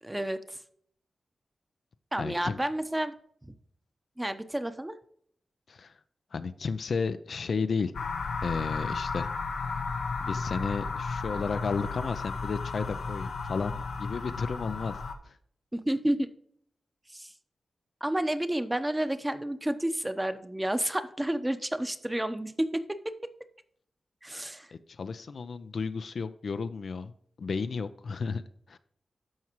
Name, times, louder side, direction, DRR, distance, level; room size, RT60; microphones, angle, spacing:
voice 1, 0.0-0.6 2.1-3.1 3.4-3.5 4.2-5.0 15.7-16.3 17.1-17.3 18.0-23.3 24.2-24.7, right 1 dB, 15° right, 9 dB, 0.9 m, -30 dB
voice 2, 2.2-2.6 5.7-5.9 6.3-7.9 8.4-9.3 10.2-14.9 15.2-15.3 24.7-27.1 27.4-28.4 28.7-28.8, left 5 dB, 70° left, 11 dB, 0.5 m, -33 dB
sound 1, 7.9-15.1, left 4 dB, 90° left, 0.8 m, -34 dB
13.0 x 4.7 x 3.0 m, 0.63 s
cardioid pair, 55°, 0 cm